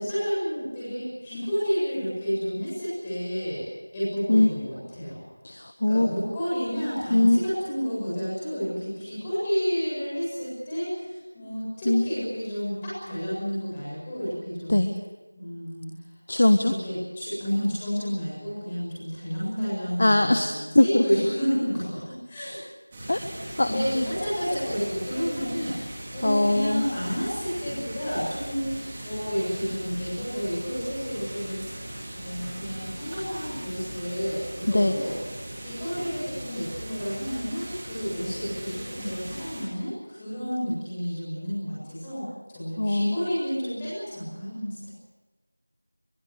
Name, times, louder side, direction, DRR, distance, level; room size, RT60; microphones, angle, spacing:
voice 1, 0.0-3.7 3.9-5.2 5.9-14.8 15.3-15.9 16.6-22.6 23.6-25.9 26.1-35.1 35.6-44.9, equal, 10° left, -9 dB, 7.6 m, -30 dB
voice 2, 5.4-6.1 7.1-7.4 11.8-12.1 14.7-14.9 16.3-16.7 20.0-20.5 20.7-21.1 23.1-23.2 23.6-24.0 26.2-26.9 34.7-35.0 42.8-43.2, left 1 dB, 30° left, 7 dB, 1.4 m, -21 dB
sound 1, 22.9-39.6, right 1 dB, 10° right, 3.0 m, -39 dB
24.0 x 22.0 x 8.2 m, 1.1 s
figure-of-eight pair, 175°, 0 cm